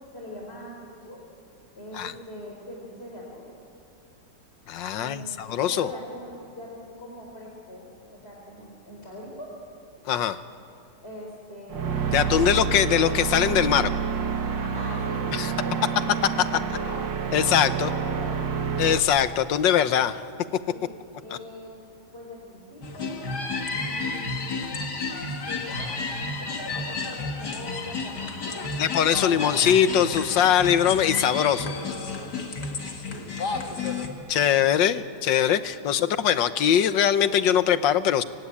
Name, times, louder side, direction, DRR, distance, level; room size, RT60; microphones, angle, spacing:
voice 1, 0.1-1.2 1.7-3.5 4.9-7.9 8.1-9.5 11.0-12.6 14.6-15.8 16.6-17.0 17.3-19.0 20.7-20.9 21.2-21.7 22.1-23.3 23.7-24.9 25.5-26.0 26.4-29.6 33.0-34.0 36.0-36.2, left 1 dB, 35° left, -1 dB, 4.5 m, -42 dB
voice 2, 4.7-5.9 10.0-10.4 12.1-13.9 15.3-15.5 16.4-16.5 17.3-17.9 18.8-20.2 28.8-31.8 34.3-38.2, left 9 dB, 90° left, 12 dB, 1.6 m, -22 dB
sound 1, 11.7-19.0, right 6 dB, 85° right, 2.2 m, -28 dB
sound 2, 22.8-34.1, left 3 dB, 65° left, 2.6 m, -31 dB
24.5 x 24.0 x 9.9 m, 2.5 s
omnidirectional pair, 1.9 m